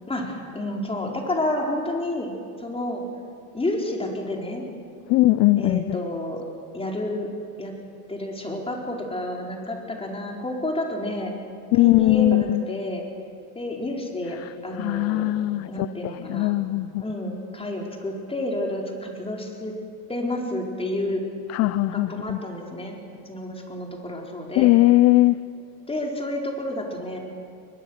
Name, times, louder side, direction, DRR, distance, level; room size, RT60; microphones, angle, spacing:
voice 1, 0.1-2.3 2.6-3.0 3.5-4.7 5.6-6.4 6.7-7.3 7.6-7.7 8.1-11.3 11.8-13.0 13.5-15.3 15.7-16.6 17.0-19.8 20.1-21.2 21.9-23.0 23.2-24.7 25.9-27.2, left 1 dB, 15° left, 0 dB, 4.5 m, -30 dB
voice 2, 5.1-6.0 11.7-12.6 14.8-17.0 21.5-22.4 24.6-25.4, left 18 dB, 35° left, 17 dB, 0.4 m, -20 dB
23.0 x 21.0 x 6.5 m, 2.3 s
supercardioid pair, 105°, 44 cm